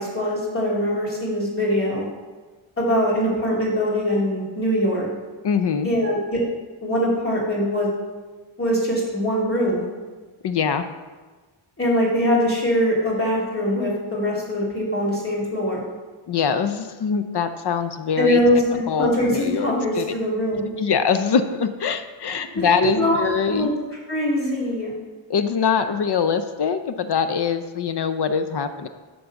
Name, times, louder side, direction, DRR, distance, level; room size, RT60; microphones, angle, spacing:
voice 1, 0.0-2.0 2.8-5.1 5.8-6.4 6.8-7.9 8.6-9.9 11.8-15.8 18.2-20.7 22.6-23.2 23.5-23.7 24.1-24.9, equal, 25° left, -5 dB, 2.7 m, -22 dB
voice 2, 5.4-5.9 10.4-10.9 16.3-18.4 18.9-20.1 20.8-23.7 25.3-28.9, left 6 dB, 55° left, 9 dB, 0.6 m, -23 dB
11.5 x 3.9 x 7.0 m, 1.3 s
wide cardioid pair, 165°, 49 cm